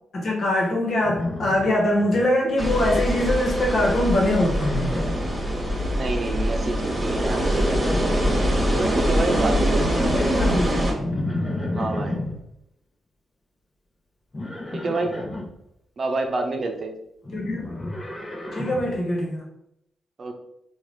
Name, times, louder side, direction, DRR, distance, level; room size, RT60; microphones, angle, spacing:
voice 1, 0.1-4.9 9.7-10.9 17.3-17.8 18.5-19.4, left 1 dB, 60° left, -1 dB, 1.2 m, -23 dB
Livestock farm animals working animals, 1.0-2.3 2.5-3.1 4.4-5.3 6.9-8.7 11.0-12.4 14.3-15.5 17.2-19.0, left 1 dB, 35° left, 1.0 m, -31 dB
sound 1, 2.6-10.9, equal, 25° right, 1.3 m, -23 dB
voice 2, 5.9-7.8 8.7-10.1 11.7-12.2 14.7-15.1 16.0-16.9 20.2-20.3, right 3 dB, 50° right, 4 dB, 0.7 m, -28 dB
3.8 x 2.5 x 3.2 m, 0.79 s
hypercardioid pair, 45°, 0 cm